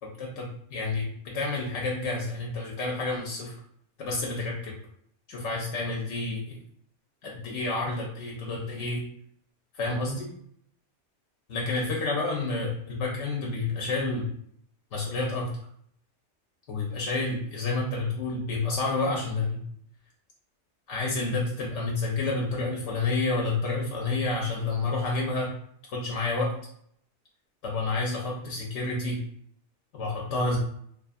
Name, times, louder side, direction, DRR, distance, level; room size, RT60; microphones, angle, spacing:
voice 1, 0.2-3.5 4.0-4.7 5.3-6.6 7.2-9.0 9.7-10.3 11.5-14.3 14.9-15.5 16.7-19.6 20.9-25.5 25.9-26.5 27.6-29.2 29.9-30.6, left 3 dB, 80° left, -2 dB, 0.9 m, -29 dB
2.4 x 2.4 x 2.5 m, 0.66 s
omnidirectional pair, 1.2 m